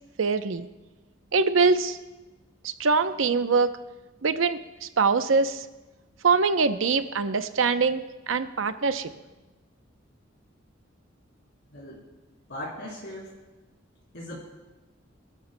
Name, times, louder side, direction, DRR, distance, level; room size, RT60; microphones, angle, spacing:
voice 1, 0.2-0.7 1.3-2.0 2.6-3.7 4.2-5.6 6.2-9.1, right 4 dB, 90° right, 10 dB, 0.7 m, -23 dB
voice 2, 11.7-12.0 12.5-13.3 14.1-14.4, left 1 dB, 65° left, -5 dB, 3.7 m, -38 dB
25.0 x 13.0 x 2.2 m, 1.1 s
head